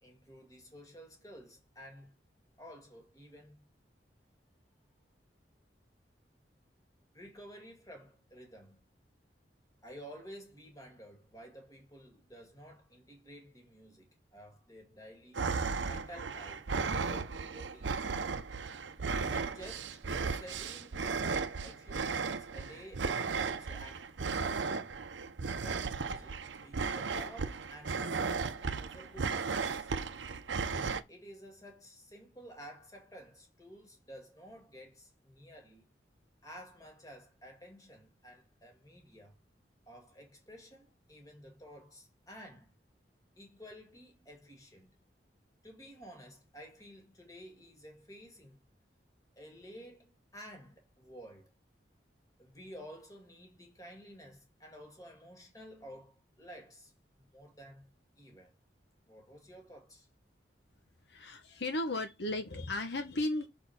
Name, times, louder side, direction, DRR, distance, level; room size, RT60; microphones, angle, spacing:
voice 1, 0.0-2.1 2.6-3.7 7.1-8.8 9.8-15.4 15.8-18.1 19.1-25.0 25.6-29.9 30.8-35.9 36.4-39.4 39.9-42.7 43.4-45.0 45.6-48.6 49.4-51.5 52.4-57.9 58.2-58.5 59.1-60.1, equal, 20° left, 2.0 m, -52 dB
sound 1, 15.3-31.0, right 5 dB, 90° right, 0.7 m, -35 dB
voice 2, 61.1-63.5, left 2 dB, 70° left, 1.0 m, -35 dB
6.0 x 4.3 x 5.8 m
head